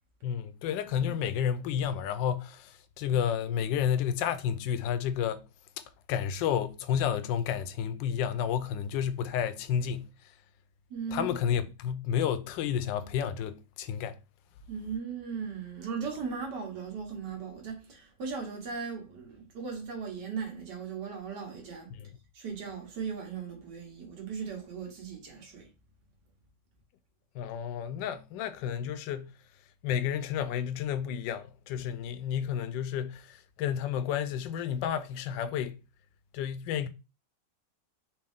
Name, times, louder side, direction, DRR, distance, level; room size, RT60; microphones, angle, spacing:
voice 1, 0.2-5.4 6.1-10.1 11.1-14.2 21.9-22.1 27.3-29.3 29.8-35.8 36.3-36.9, left 8 dB, 90° left, 1.3 m, -31 dB
voice 2, 10.9-11.3 14.7-21.9 22.3-25.7, right 6 dB, 70° right, 1.8 m, -38 dB
4.3 x 2.7 x 3.5 m
omnidirectional pair, 1.9 m